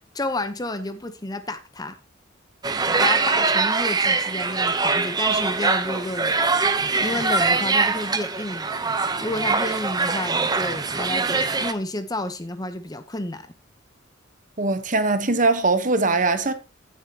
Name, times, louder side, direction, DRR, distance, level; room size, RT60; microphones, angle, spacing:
voice 1, 0.1-2.0 3.0-8.9 9.2-13.5, left 2 dB, 20° left, 0.8 m, -31 dB
sound 1, 2.6-11.7, right 4 dB, 20° right, 0.8 m, -23 dB
voice 2, 14.6-16.5, right 3 dB, 40° right, 1.1 m, -21 dB
15.0 x 7.9 x 2.9 m
head